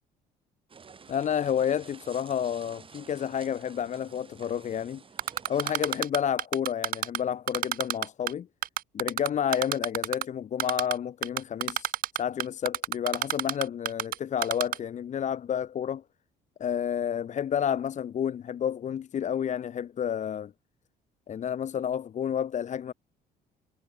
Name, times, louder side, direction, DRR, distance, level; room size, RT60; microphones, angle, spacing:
sound 1, 0.7-6.0, right 5 dB, 30° right, 6.1 m, -51 dB
voice 1, 1.1-5.0 5.5-8.5 8.9-11.9 12.2-16.0 16.6-20.5 21.3-22.9, left 9 dB, 45° left, 1.5 m, -30 dB
Typing, 5.2-7.2 7.5-8.3 8.6-10.2 10.6-10.9 11.2-14.1 14.4-14.8, right 12 dB, 55° right, 0.8 m, -28 dB
cardioid pair, 110°, 17 cm